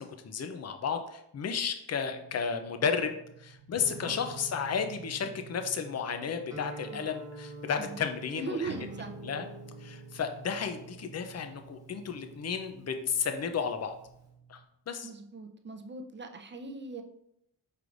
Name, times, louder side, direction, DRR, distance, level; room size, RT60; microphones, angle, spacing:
voice 1, 0.0-8.7 9.2-9.5 9.8-13.9 14.5-14.6 14.9-15.1, left 6 dB, 40° left, 6 dB, 0.5 m, -33 dB
sound 1, 2.1-14.6, right 4 dB, 90° right, 0.7 m, -49 dB
Guitar, 6.5-14.3, right 1 dB, 10° right, 1.5 m, -49 dB
voice 2, 8.4-9.2 15.0-17.0, right 3 dB, 25° right, 5 dB, 0.6 m, -39 dB
4.7 x 3.3 x 2.5 m, 0.77 s
cardioid pair, 50°, 43 cm